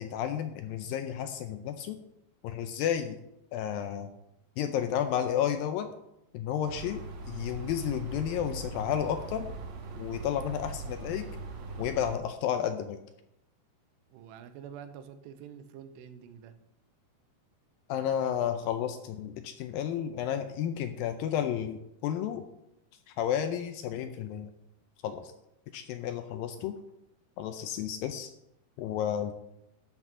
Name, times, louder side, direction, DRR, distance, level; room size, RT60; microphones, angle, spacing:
voice 1, 0.0-2.0 2.4-3.2 3.5-4.1 4.6-5.9 6.3-9.5 9.9-11.3 11.8-13.0 17.9-22.4 23.2-24.5 25.0-25.3 25.7-26.8 27.4-28.3 28.8-29.3, left 9 dB, 80° left, 8 dB, 2.1 m, -32 dB
sound 1, 6.7-12.2, right 3 dB, 60° right, 2.5 m, -40 dB
voice 2, 14.1-16.5, right 8 dB, 85° right, 10 dB, 3.0 m, -47 dB
12.0 x 6.1 x 6.8 m, 0.84 s
omnidirectional pair, 4.7 m